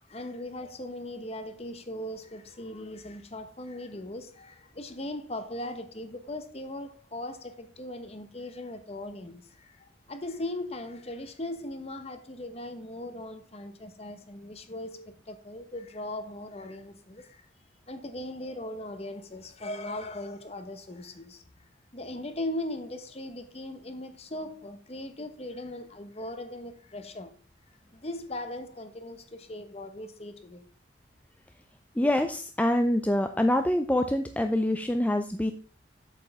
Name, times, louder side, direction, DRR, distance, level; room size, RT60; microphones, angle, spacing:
voice 1, 0.1-17.4 17.9-21.4 21.9-27.3 27.9-30.6, left 1 dB, 35° left, 1.0 m, -39 dB
voice 2, 32.0-35.5, left 1 dB, 10° left, 0.4 m, -25 dB
8.4 x 7.8 x 3.5 m
head